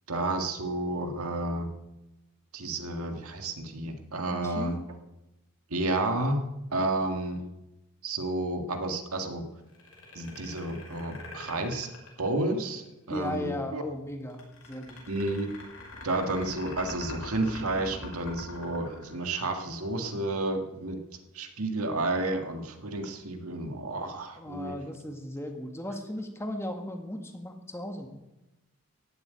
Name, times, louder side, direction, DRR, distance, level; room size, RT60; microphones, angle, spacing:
voice 1, 0.1-1.7 2.5-4.7 5.7-6.4 6.7-7.4 8.0-9.4 10.2-11.9 12.2-13.8 15.1-15.5 16.0-21.0 21.3-24.7, right 2 dB, 85° right, 6 dB, 1.8 m, -31 dB
voice 2, 4.3-4.7 13.1-15.0 24.4-28.1, left 1 dB, 10° left, 4 dB, 1.6 m, -36 dB
sound 1, 9.7-12.9 14.3-19.8, left 2 dB, 70° left, 5.6 m, -44 dB
15.0 x 7.8 x 9.4 m, 0.98 s
head